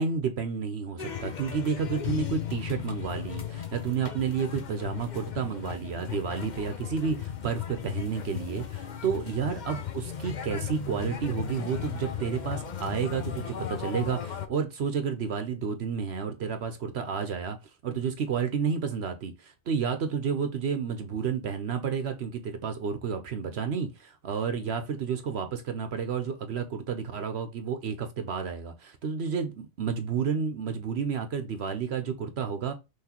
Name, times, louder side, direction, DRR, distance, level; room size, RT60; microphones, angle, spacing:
voice 1, 0.0-17.6 17.8-32.7, right 6 dB, 65° right, 1.0 m, -31 dB
sound 1, 1.0-14.5, left 9 dB, 45° left, 0.8 m, -36 dB
5.9 x 3.1 x 2.9 m
omnidirectional pair, 1.2 m